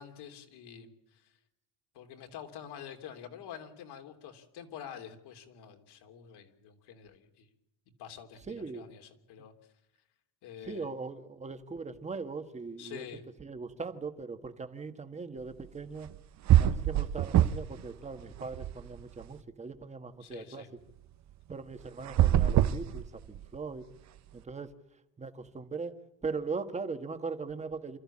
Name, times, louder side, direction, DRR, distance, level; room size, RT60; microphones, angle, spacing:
voice 1, 0.0-1.3 1.9-7.5 8.0-9.5 10.4-10.9 12.8-13.2 20.2-20.7, left 9 dB, 65° left, 5 dB, 3.3 m, -47 dB
voice 2, 8.5-8.9 10.6-13.0 13.4-16.1 16.6-20.6 21.5-23.9 24.3-24.7 25.2-28.0, right 4 dB, 15° right, 8 dB, 1.5 m, -40 dB
sound 1, 16.1-16.2 16.5-17.8 18.1-19.2 22.0-23.6, right 12 dB, 40° right, 0.8 m, -25 dB
28.0 x 14.0 x 8.6 m, 0.87 s
cardioid pair, 165°, 43 cm